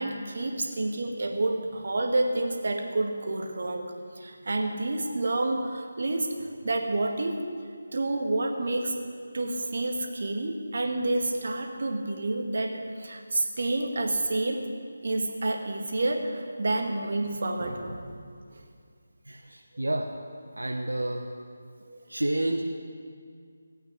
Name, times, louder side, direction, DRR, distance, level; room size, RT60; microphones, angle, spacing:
voice 1, 0.0-3.9 4.2-7.4 7.9-9.0 9.3-14.6 15.0-18.0 21.9-22.0, right 2 dB, 60° right, 3 dB, 1.9 m, -29 dB
voice 2, 19.3-20.1 20.6-21.3 22.1-22.7, right 1 dB, 85° right, 2 dB, 1.1 m, -29 dB
16.5 x 8.9 x 8.2 m, 2.2 s
figure-of-eight pair, 160°, 0 cm